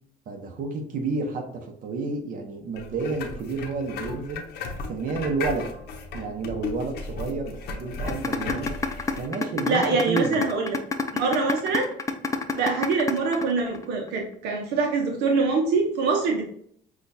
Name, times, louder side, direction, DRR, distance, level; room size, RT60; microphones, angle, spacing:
voice 1, 0.3-4.4 4.8-5.7 6.1-8.7 9.2-10.4, right 4 dB, 55° right, 3 dB, 1.0 m, -30 dB
sound 1, 2.8-9.3, left 4 dB, 75° left, 0.8 m, -35 dB
sound 2, 8.1-14.1, left 4 dB, 20° left, 0.5 m, -27 dB
voice 2, 9.6-10.8 11.1-11.8 12.5-16.4, right 4 dB, 80° right, 2 dB, 0.8 m, -24 dB
6.1 x 2.4 x 2.7 m, 0.63 s
cardioid pair, 110°, 17 cm